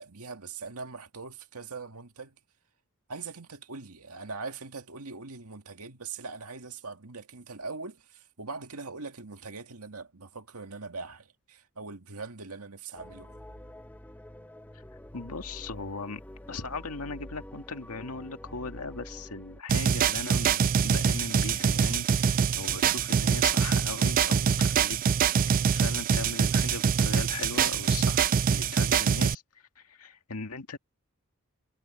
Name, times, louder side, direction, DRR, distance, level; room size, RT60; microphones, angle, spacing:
voice 1, 0.0-2.4 3.1-13.4, right 4 dB, 85° right, 1.9 m, -41 dB
sound 1, 12.9-19.6, left 1 dB, 10° left, 0.9 m, -46 dB
voice 2, 15.1-16.2 16.5-25.0 25.7-30.8, left 4 dB, 85° left, 1.9 m, -38 dB
sound 2, 19.7-29.3, right 7 dB, 40° right, 0.4 m, -24 dB
head